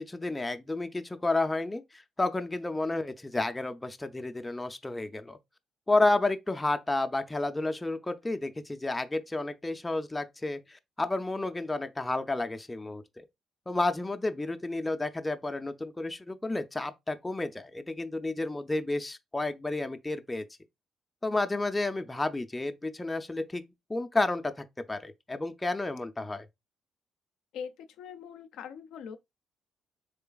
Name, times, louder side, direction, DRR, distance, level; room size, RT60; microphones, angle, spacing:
voice 1, 0.0-5.4 5.9-13.2 13.7-20.5 21.2-23.6 23.9-26.5, left 2 dB, 15° left, 0.4 m, -31 dB
voice 2, 27.5-29.2, left 7 dB, 85° left, 0.4 m, -42 dB
3.7 x 3.2 x 2.3 m
cardioid pair, 90°, 0 cm